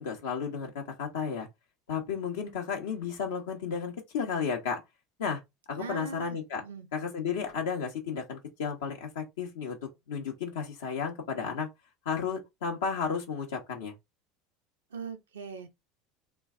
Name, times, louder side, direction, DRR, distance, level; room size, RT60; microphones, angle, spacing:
voice 1, 0.0-1.5 1.9-4.8 5.2-5.4 5.7-6.6 6.9-9.8 10.1-11.7 12.0-13.9, left 6 dB, 80° left, 1.0 m, -33 dB
voice 2, 5.8-6.9 14.9-15.7, right 4 dB, 90° right, 0.9 m, -40 dB
3.1 x 2.3 x 3.6 m
hypercardioid pair, 80°, 0 cm